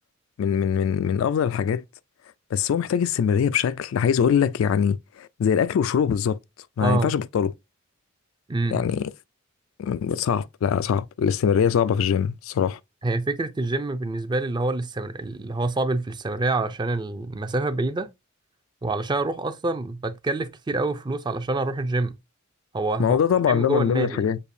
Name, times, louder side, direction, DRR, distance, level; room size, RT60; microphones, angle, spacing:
voice 1, 0.4-1.8 2.5-6.4 6.8-7.5 8.7-9.1 9.8-12.8 23.0-24.4, left 7 dB, 75° left, 0.3 m, -22 dB
voice 2, 6.8-7.1 8.5-8.8 13.0-18.1 18.8-22.2 22.7-23.2 23.5-24.3, right 2 dB, 20° right, 0.4 m, -26 dB
6.6 x 2.6 x 2.6 m
head